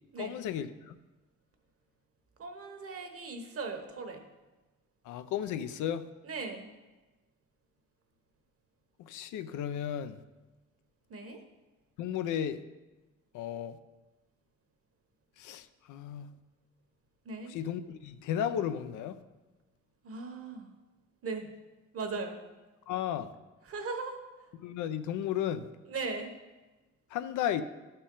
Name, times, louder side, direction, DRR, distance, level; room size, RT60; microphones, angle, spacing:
voice 1, 0.2-1.0 5.0-6.1 9.0-10.2 12.0-12.6 13.3-13.8 15.4-16.4 17.5-19.2 22.9-23.3 24.6-25.7 27.1-27.6, left 10 dB, 85° left, 0.5 m, -34 dB
voice 2, 2.4-4.2 6.2-6.7 11.1-11.4 17.2-17.6 20.0-20.7 21.2-21.5 21.9-22.4 23.6-24.5 25.9-26.3, right 4 dB, 50° right, 1.1 m, -38 dB
11.0 x 4.4 x 3.8 m
cardioid pair, 90°, 30 cm